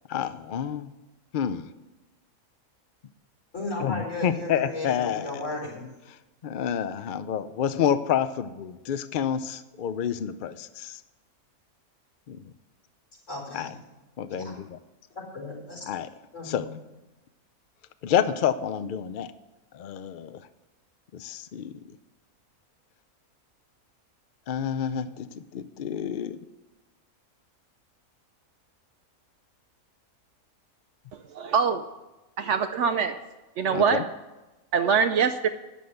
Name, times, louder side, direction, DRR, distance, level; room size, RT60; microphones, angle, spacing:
voice 1, 0.1-0.9 1.3-1.7 3.8-5.4 6.1-11.0 12.3-12.4 13.5-13.7 14.2-14.8 15.9-16.1 16.4-16.7 18.0-19.3 19.7-20.5 21.1-21.8 24.5-26.4 33.7-34.0, left 9 dB, 80° left, 12 dB, 0.4 m, -29 dB
voice 2, 3.5-5.9 13.3-13.7 14.3-14.5 15.1-15.9 16.3-16.8, left 2 dB, 55° left, -4 dB, 4.2 m, -35 dB
voice 3, 31.3-31.8 32.4-33.2 33.6-34.0 34.7-35.5, right 6 dB, 65° right, 8 dB, 0.8 m, -23 dB
10.0 x 7.0 x 7.8 m, 1.1 s
omnidirectional pair, 1.5 m